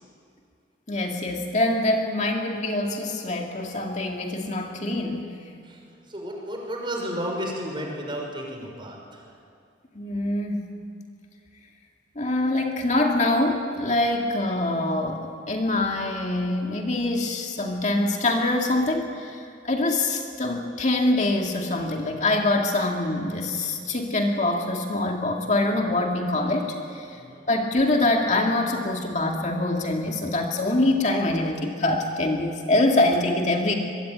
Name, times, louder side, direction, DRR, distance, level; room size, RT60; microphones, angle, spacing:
voice 1, 0.9-5.3 9.9-10.7 12.2-27.2 27.5-33.7, left 2 dB, 40° left, 1 dB, 2.3 m, -24 dB
voice 2, 5.6-9.2 27.1-27.5, equal, 25° right, 0 dB, 6.0 m, -33 dB
25.0 x 23.0 x 9.6 m, 2.4 s
head